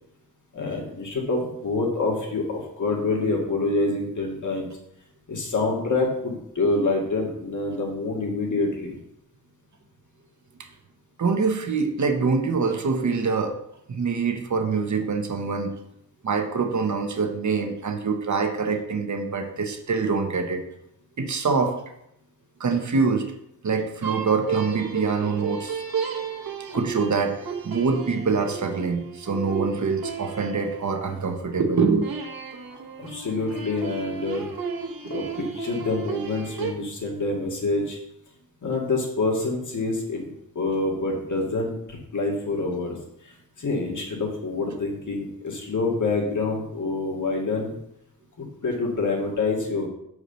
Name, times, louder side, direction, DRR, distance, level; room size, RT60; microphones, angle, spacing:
voice 1, 0.5-4.7 5.3-8.9 33.0-34.5 35.1-38.0 38.6-43.0 43.2-43.3 43.6-47.8 48.4-49.9, left 3 dB, 55° left, 0 dB, 2.0 m, -26 dB
voice 2, 11.2-13.6 13.9-15.7 16.2-20.6 21.2-21.8 22.6-23.2 23.6-25.8 26.7-27.4 27.6-32.1, right 4 dB, 55° right, 5 dB, 1.1 m, -24 dB
sound 1, 24.0-31.4 32.0-36.7, right 6 dB, 80° right, 1.3 m, -34 dB
6.5 x 4.8 x 6.8 m, 0.77 s
wide cardioid pair, 140°, 35 cm